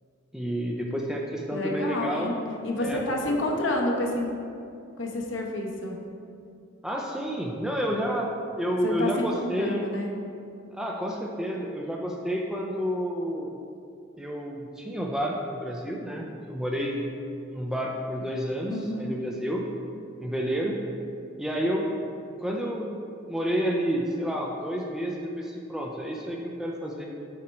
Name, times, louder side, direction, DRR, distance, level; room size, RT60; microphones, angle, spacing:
voice 1, 0.3-2.3 2.8-3.4 6.8-8.3 8.6-9.9 10.7-13.5 14.2-17.0 17.5-19.6 20.2-20.8 21.4-21.9 22.4-23.0 23.3-27.1, equal, 5° right, -1 dB, 0.4 m, -30 dB
voice 2, 1.5-2.3 2.6-4.3 5.0-6.0 8.8-10.1 18.7-19.1, left 1 dB, 65° left, 0 dB, 0.9 m, -29 dB
7.7 x 4.3 x 4.3 m, 2.5 s
head